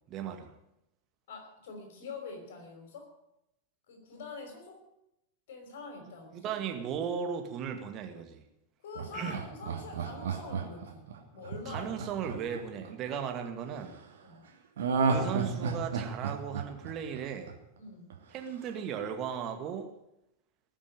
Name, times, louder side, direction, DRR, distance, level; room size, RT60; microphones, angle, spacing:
voice 1, 0.1-0.5 6.3-8.4 9.1-9.4 11.7-14.0 15.0-17.5 18.3-19.9, right 7 dB, 35° right, 6 dB, 2.0 m, -36 dB
voice 2, 1.3-3.1 3.9-4.9 5.5-6.5 8.8-12.0 14.2-14.5 17.8-18.2, left 4 dB, 55° left, 4 dB, 5.4 m, -45 dB
Laughter, 9.0-13.2 14.8-17.8 18.1-18.2, right 5 dB, 60° right, 2.8 m, -32 dB
19.5 x 7.5 x 9.2 m, 0.85 s
figure-of-eight pair, 90°, 0 cm